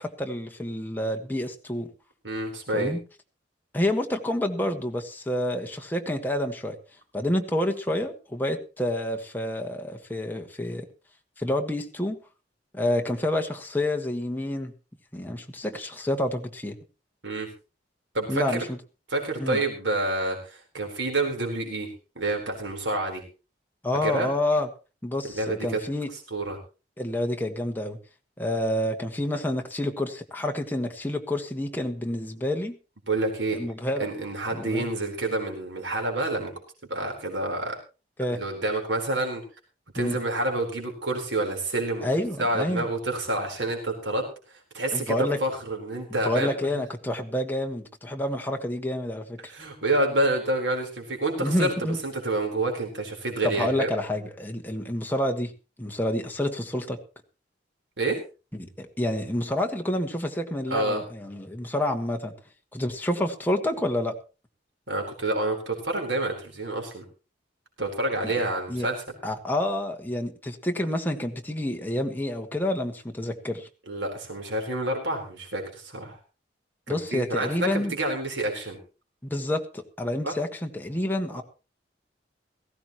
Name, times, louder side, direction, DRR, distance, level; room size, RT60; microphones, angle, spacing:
voice 1, 0.0-1.9 2.7-3.0 3.7-6.8 7.1-10.9 11.4-12.2 12.7-14.7 15.1-16.7 18.3-18.8 19.4-19.6 23.8-24.7 25.0-26.1 27.0-28.0 28.4-32.8 33.5-34.1 34.5-34.9 38.2-38.4 39.9-40.2 42.0-42.9 44.9-45.4 46.2-49.4 51.4-52.0 53.4-55.5 55.8-57.0 58.6-62.3 62.7-64.2 68.7-68.9 69.2-73.7 76.9-77.9 79.3-81.4, left 1 dB, 10° left, 3 dB, 1.5 m, -28 dB
voice 2, 2.2-2.9 17.2-17.5 18.1-18.6 19.1-23.2 24.0-24.3 25.2-25.8 26.3-26.6 33.1-33.6 34.0-36.5 36.9-37.8 38.3-39.4 39.9-42.1 42.4-46.7 49.4-53.9 58.0-58.2 60.7-61.0 64.9-67.0 67.8-69.0 73.9-76.2 76.9-78.8 80.2-80.3, right 2 dB, 80° right, 2 dB, 4.2 m, -28 dB
18.5 x 15.5 x 3.0 m, 0.32 s
head